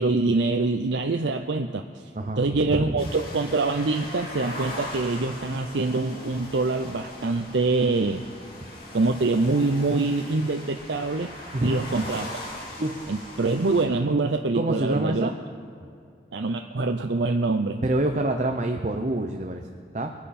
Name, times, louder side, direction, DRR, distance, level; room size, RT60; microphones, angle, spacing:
voice 1, 0.0-1.8 2.4-8.2 8.9-11.3 11.6-12.4 13.1-15.3 16.3-17.8, right 3 dB, 85° right, 5 dB, 0.6 m, -25 dB
voice 2, 2.1-3.1 11.5-12.1 12.8-13.4 14.5-15.3 17.8-19.7 19.9-20.1, right 1 dB, 40° right, 4 dB, 0.7 m, -27 dB
sound 1, 3.0-13.8, left 1 dB, 55° left, 3.2 m, -40 dB
22.0 x 10.5 x 4.3 m, 2.4 s
head